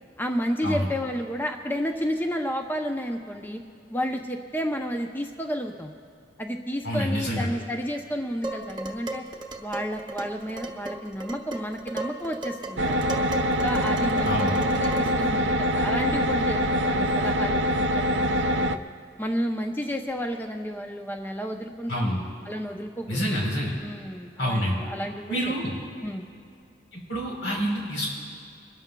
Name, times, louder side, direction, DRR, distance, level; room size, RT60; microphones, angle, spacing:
voice 1, 0.2-3.6 3.9-5.9 6.4-9.2 9.6-13.2 13.6-18.8 19.2-22.1 22.4-23.2 23.8-25.4 26.0-26.3, equal, 10° left, 3 dB, 0.6 m, -31 dB
voice 2, 6.8-7.5 14.2-14.5 21.9-22.2 23.1-23.7 24.4-24.8 25.3-25.7 26.9-28.1, equal, 85° left, -2 dB, 4.0 m, -27 dB
Dishes pots and pans, 8.4-15.3, right 2 dB, 25° right, 0.9 m, -36 dB
sound 1, 12.8-18.8, equal, 70° right, 0.5 m, -24 dB
27.0 x 13.0 x 2.3 m, 2.5 s
head